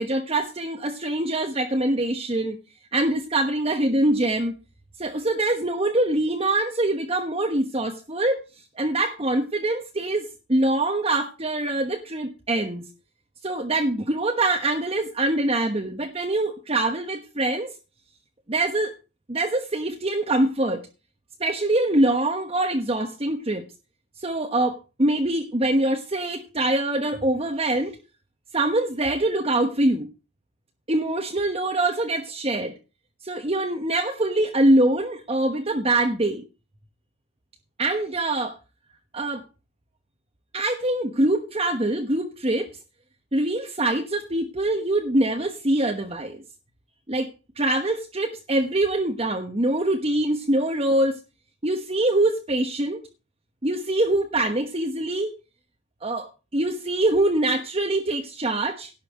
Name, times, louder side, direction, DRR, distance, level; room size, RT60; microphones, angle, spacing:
voice 1, 0.0-2.6 2.9-4.5 5.0-8.4 8.8-12.9 13.4-17.7 18.5-18.9 19.3-20.9 21.4-23.7 24.2-28.0 28.5-30.1 30.9-32.7 33.2-36.4 37.8-38.6 39.1-39.4 40.5-42.7 43.3-46.4 47.1-47.3 47.6-51.2 51.6-53.0 53.6-55.3 56.0-58.9, right 1 dB, 30° right, 3 dB, 1.2 m, -24 dB
11.5 x 5.7 x 8.1 m, 0.31 s
head